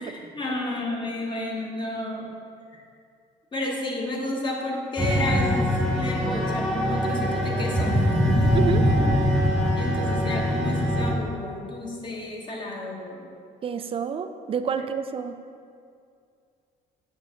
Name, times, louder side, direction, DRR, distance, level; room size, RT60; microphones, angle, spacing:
voice 1, 0.0-2.3 2.7-2.8 3.5-8.0 9.8-13.3, left 2 dB, 25° left, -1 dB, 1.2 m, -31 dB
sound 1, 5.0-11.1, equal, ahead, 1.1 m, -23 dB
voice 2, 8.5-8.9 13.6-15.4, right 6 dB, 35° right, 9 dB, 0.4 m, -28 dB
7.0 x 5.5 x 3.7 m, 2.3 s
cardioid pair, 110°, 17 cm